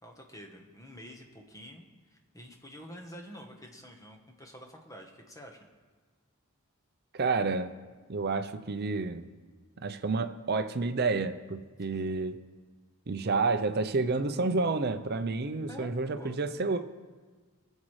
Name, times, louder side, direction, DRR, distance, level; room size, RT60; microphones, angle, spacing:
voice 1, 0.0-5.7 11.9-12.1 15.7-16.4, equal, 15° left, 2 dB, 1.1 m, -48 dB
voice 2, 7.1-7.7 8.1-9.3 9.8-12.4 13.1-16.8, right 3 dB, 45° right, 9 dB, 0.6 m, -30 dB
22.0 x 7.4 x 3.2 m, 1.4 s
head